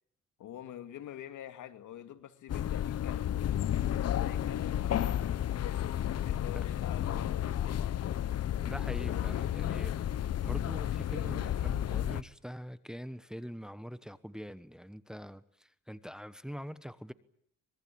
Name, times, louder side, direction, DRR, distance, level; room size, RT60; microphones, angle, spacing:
voice 1, 0.4-3.3 4.0-5.6 6.2-8.0, left 11 dB, 75° left, 8 dB, 2.5 m, -46 dB
sound 1, 2.5-12.2, left 11 dB, 55° left, 1.0 m, -32 dB
voice 2, 8.6-9.9 10.4-15.4 15.9-17.1, equal, ahead, 13 dB, 1.2 m, -43 dB
25.0 x 22.0 x 8.7 m, 0.69 s
cardioid pair, 90°, 30 cm